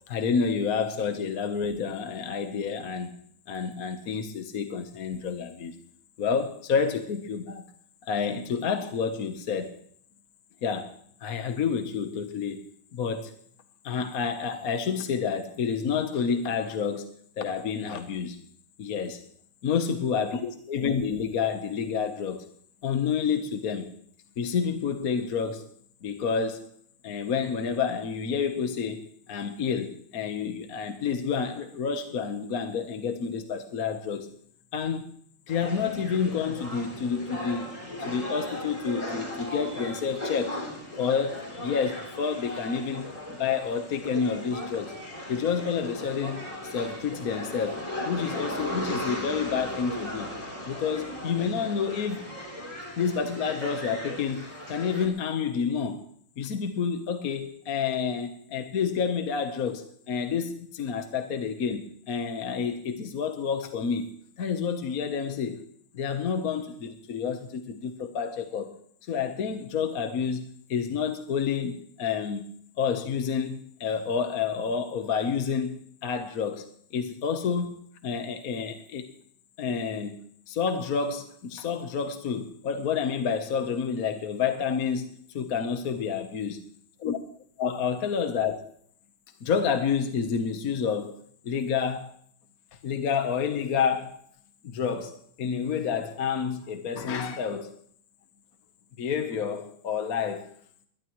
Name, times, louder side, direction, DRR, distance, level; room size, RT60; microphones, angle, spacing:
voice 1, 0.1-3.2 3.5-5.7 6.2-7.6 8.0-9.7 10.6-10.9 11.2-12.6 12.9-13.3 13.8-18.4 18.8-19.2 19.6-22.4 22.8-23.9 24.4-25.7 26.0-26.6 27.0-34.3 34.7-35.1 35.5-37.7 38.0-40.6 41.0-45.0 45.3-50.3 50.7-52.2 53.0-56.0 56.4-64.1 64.4-65.6 65.9-68.7 69.1-72.5 72.8-76.7 76.9-79.1 79.6-80.2 80.5-86.6 87.0-87.2 87.6-88.6 89.4-91.2 91.4-92.1 92.8-94.2 94.6-97.7 99.0-100.5, left 6 dB, 50° left, 1.3 m, -29 dB
sound 1, 35.5-55.1, left 1 dB, 15° left, 3.6 m, -37 dB
21.0 x 21.0 x 3.1 m
omnidirectional pair, 2.3 m